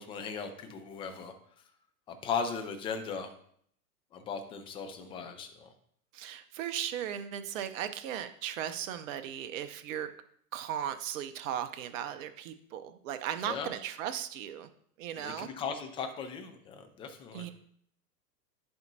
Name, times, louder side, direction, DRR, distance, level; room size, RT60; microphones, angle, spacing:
voice 1, 0.0-1.3 2.1-3.3 4.1-5.7 13.4-13.8 15.1-17.5, left 5 dB, 10° left, 6 dB, 0.4 m, -37 dB
voice 2, 6.1-10.1 10.5-14.7 15.0-15.5 17.3-17.5, right 10 dB, 55° right, 9 dB, 0.7 m, -37 dB
10.5 x 4.3 x 2.7 m, 0.64 s
hypercardioid pair, 110°, 48 cm